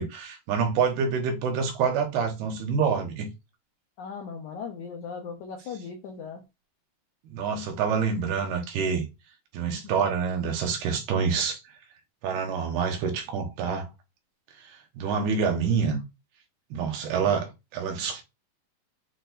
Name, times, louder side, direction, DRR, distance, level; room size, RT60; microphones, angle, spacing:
voice 1, 0.0-3.3 7.3-9.0 9.5-11.6 12.2-13.9 14.6-14.7 14.9-16.0 16.7-18.2, right 6 dB, 75° right, 3.3 m, -27 dB
voice 2, 4.0-6.4 9.7-10.0, left 6 dB, 80° left, 1.7 m, -38 dB
8.6 x 4.2 x 2.6 m
omnidirectional pair, 4.6 m